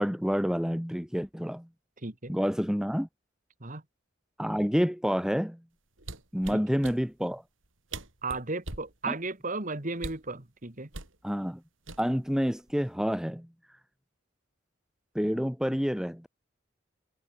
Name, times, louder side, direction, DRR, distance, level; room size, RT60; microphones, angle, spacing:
voice 1, 0.0-1.7 2.3-3.1 4.4-5.6 6.3-7.4 9.1-9.2 11.2-11.6 12.0-13.5 15.1-16.3, equal, 5° right, 1.4 m, -28 dB
voice 2, 2.0-2.3 3.6-3.8 6.5-6.6 8.2-10.9, right 3 dB, 40° right, 2.3 m, -35 dB
sound 1, 6.0-7.0 7.6-7.7 7.9-8.9 10.0-10.3 10.9-11.2 11.9-12.3 12.7-13.0, right 3 dB, 80° right, 4.9 m, -40 dB
head